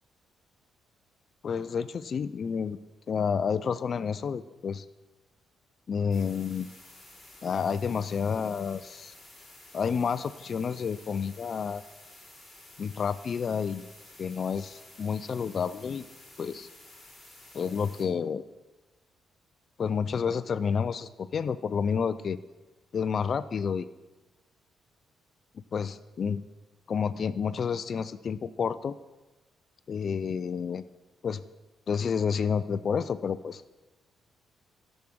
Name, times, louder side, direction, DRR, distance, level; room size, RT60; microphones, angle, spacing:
voice 1, 1.4-2.8 3.1-4.9 5.9-6.7 7.4-9.1 9.7-11.8 12.8-13.9 14.2-16.1 16.4-16.7 17.5-18.4 19.8-22.4 22.9-23.9 25.7-26.4 26.9-29.0 29.9-30.8 31.2-31.4 31.9-33.6, left 6 dB, 50° left, 15 dB, 0.4 m, -30 dB
sound 1, 6.1-18.1, left 2 dB, 10° left, 3.2 m, -52 dB
10.5 x 6.3 x 6.1 m, 1.2 s
cardioid pair, 90°, 0 cm